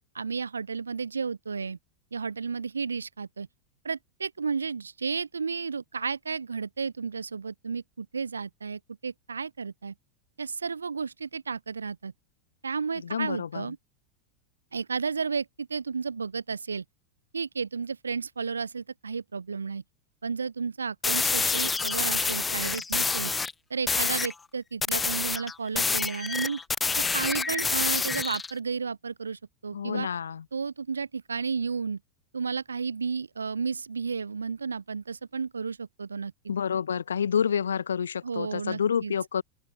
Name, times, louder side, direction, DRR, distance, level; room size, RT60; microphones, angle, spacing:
voice 1, 0.1-1.8 2.1-3.5 3.8-9.9 10.4-12.1 12.6-13.8 14.7-16.8 17.3-19.8 20.2-23.3 23.7-26.6 27.1-30.1 30.5-32.0 32.3-36.3 38.2-39.1, right 5 dB, 85° right, 2.6 m, -32 dB
voice 2, 13.0-13.7 29.7-30.4 36.5-39.4, left 7 dB, 80° left, 0.5 m, -28 dB
sound 1, 21.0-23.5 23.9-24.3 24.8-28.5, left 4 dB, 15° left, 0.5 m, -27 dB
open air
figure-of-eight pair, 90°, 0 cm